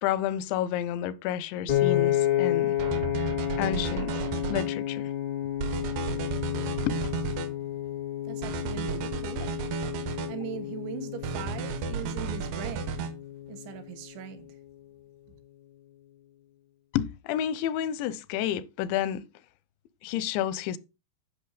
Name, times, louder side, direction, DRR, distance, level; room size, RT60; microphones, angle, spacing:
voice 1, 0.0-2.8 3.6-4.1 4.5-5.1 6.9-7.0 16.9-19.2 20.0-20.8, left 11 dB, 85° left, 3.0 m, -30 dB
Piano, 1.7-13.9, left 12 dB, 45° left, 0.6 m, -31 dB
sound 1, 2.8-4.7 5.6-7.5 8.4-10.3 11.2-13.1, right 6 dB, 70° right, 2.2 m, -33 dB
voice 2, 8.3-9.5 10.1-13.0 13.5-14.5, right 8 dB, 90° right, 3.8 m, -40 dB
10.5 x 5.8 x 4.9 m
omnidirectional pair, 5.1 m